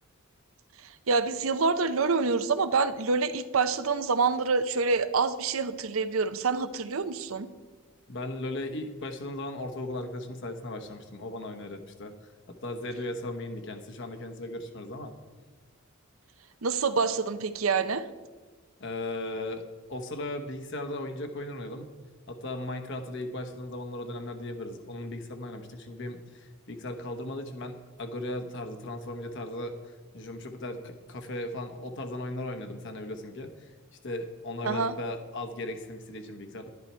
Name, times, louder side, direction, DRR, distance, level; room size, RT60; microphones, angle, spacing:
voice 1, 1.1-7.5 16.6-18.0 34.6-34.9, right 4 dB, 70° right, 12 dB, 0.7 m, -26 dB
voice 2, 8.1-12.1 12.6-15.1 18.8-21.9 22.3-29.7 30.1-33.5 34.0-36.7, left 1 dB, 60° left, 6 dB, 1.2 m, -37 dB
11.5 x 10.5 x 4.4 m, 1.4 s
head